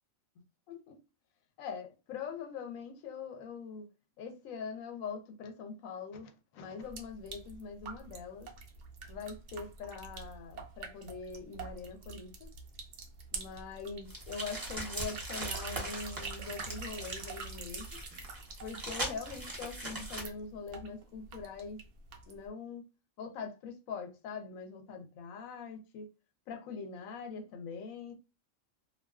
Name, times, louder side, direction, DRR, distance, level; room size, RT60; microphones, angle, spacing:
voice 1, 0.7-1.0 1.6-3.9 4.2-8.5 9.1-12.5 13.3-18.0 18.6-21.8 22.3-22.8 23.2-26.1 26.5-28.1, left 5 dB, 80° left, 1.0 m, -43 dB
sound 1, 6.8-22.5, right 4 dB, 90° right, 0.4 m, -46 dB
sound 2, 14.1-20.2, right 1 dB, 25° right, 0.5 m, -41 dB
2.4 x 2.3 x 2.3 m
omnidirectional pair, 1.4 m